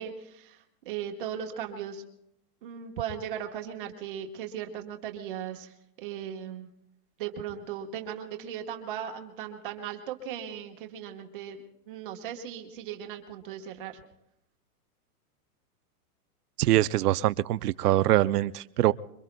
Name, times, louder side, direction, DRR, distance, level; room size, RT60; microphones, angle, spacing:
voice 1, 0.0-2.0 2.6-6.7 7.2-11.6 11.9-14.0, right 9 dB, 35° right, 3 dB, 1.3 m, -37 dB
voice 2, 16.6-18.9, right 14 dB, 75° right, 16 dB, 0.6 m, -23 dB
26.5 x 23.5 x 2.3 m, 0.79 s
supercardioid pair, 180°, 46 cm